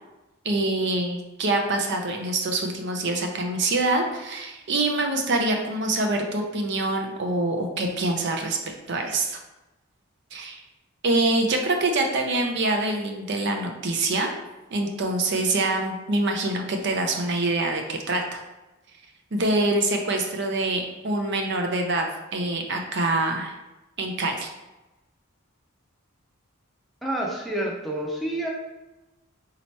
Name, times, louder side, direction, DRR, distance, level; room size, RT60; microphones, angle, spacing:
voice 1, 0.4-8.6 8.9-9.4 10.3-10.6 11.0-14.3 14.7-18.4 19.3-23.5 24.0-24.5, right 2 dB, 55° right, 3 dB, 0.6 m, -25 dB
voice 2, 27.0-28.5, right 1 dB, ahead, -2 dB, 0.6 m, -28 dB
4.1 x 2.9 x 4.5 m, 1.0 s
head